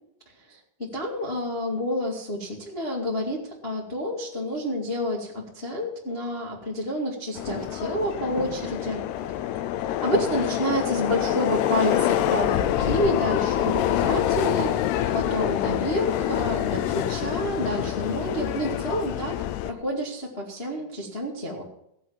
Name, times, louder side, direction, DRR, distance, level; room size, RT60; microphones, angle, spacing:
voice 1, 0.5-9.1 10.0-14.7 15.1-21.6, equal, 65° left, -2 dB, 0.6 m, -29 dB
Subway metro underground, 7.4-19.7, left 12 dB, 90° left, 2.4 m, -26 dB
sound 1, 7.5-7.8 8.3-8.7 9.2-9.4 10.1-10.4 10.9-11.3 11.9-12.3 12.6-13.0 13.6-14.0 14.5-14.9 15.2-15.3, equal, 15° left, 2.6 m, -33 dB
16.5 x 7.8 x 7.4 m, 0.78 s
omnidirectional pair, 5.6 m